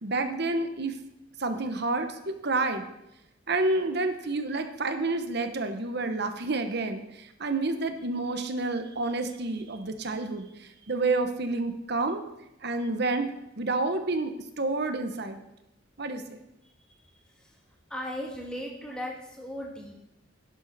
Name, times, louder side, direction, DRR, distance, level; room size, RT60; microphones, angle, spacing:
voice 1, 0.0-1.0 1.4-2.9 3.5-12.2 12.6-15.4 16.0-16.4, right 3 dB, 55° right, 8 dB, 1.1 m, -29 dB
voice 2, 16.6-17.6 17.9-20.0, equal, 5° left, -2 dB, 2.1 m, -38 dB
11.5 x 11.0 x 4.1 m, 0.88 s
head